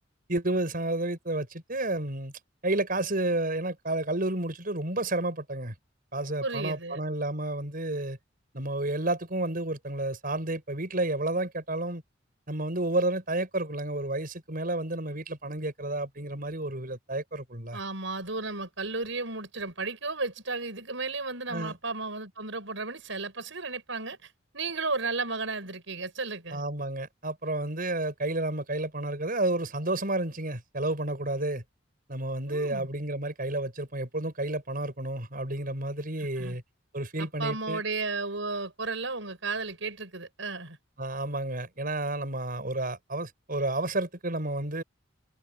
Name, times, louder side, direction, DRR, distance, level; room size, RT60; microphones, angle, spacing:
voice 1, 0.3-2.3 2.6-5.7 6.1-8.2 8.5-12.0 12.5-17.8 21.5-21.8 26.5-31.6 32.1-36.6 36.9-37.8 41.0-44.8, right 2 dB, 45° right, 6.8 m, -31 dB
voice 2, 6.4-7.0 17.7-26.6 32.5-32.9 36.4-36.6 37.2-40.8, right 3 dB, 75° right, 7.0 m, -34 dB
head